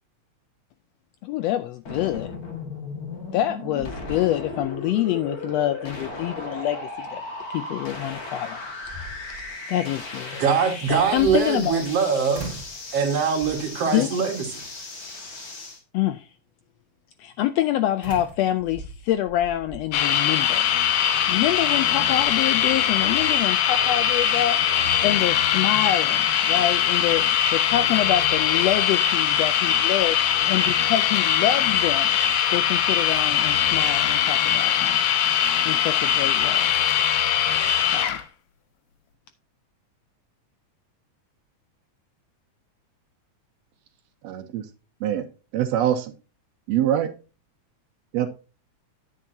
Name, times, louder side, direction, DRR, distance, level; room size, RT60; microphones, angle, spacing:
voice 1, 1.2-2.3 3.3-7.2 7.5-8.6 9.7-10.4 10.9-11.8 13.9-14.1 15.9-16.3 17.2-20.7 21.0-24.6 25.0-32.2 32.5-35.0 35.6-36.7 37.9-38.2, left 13 dB, 80° left, 1.5 m, -26 dB
sound 1, 1.9-15.8, left 2 dB, 35° left, 1.8 m, -36 dB
sound 2, 3.1-3.5 3.8-4.8 5.2-5.3 8.0-8.1 8.6-9.5 10.9-12.0 12.3-12.8 13.4-13.8 14.6-15.0 18.0-19.9, right 2 dB, 15° right, 2.2 m, -40 dB
voice 2, 10.4-12.6 12.9-14.5, right 6 dB, 60° right, 2.5 m, -23 dB
sound 3, 19.9-38.2, left 9 dB, 65° left, 1.7 m, -21 dB
voice 3, 44.2-44.6 45.0-45.3 45.5-46.1 46.7-47.1 48.1-48.3, right 10 dB, 75° right, 1.8 m, -23 dB
9.9 x 8.8 x 2.7 m
omnidirectional pair, 3.4 m